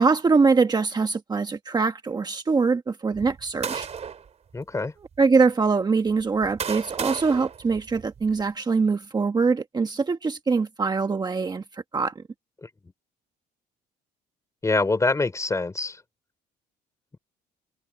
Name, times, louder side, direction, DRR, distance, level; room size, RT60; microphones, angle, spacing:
voice 1, 0.0-3.9 5.2-12.2, right 4 dB, 25° right, 1.2 m, -23 dB
sound 1, 3.1-4.3 5.0-5.2 6.1-8.4, right 7 dB, 40° right, 3.6 m, -34 dB
voice 2, 4.5-4.9 12.6-12.7 14.6-16.0, left 3 dB, 20° left, 3.8 m, -25 dB
cardioid pair, 110°, 17 cm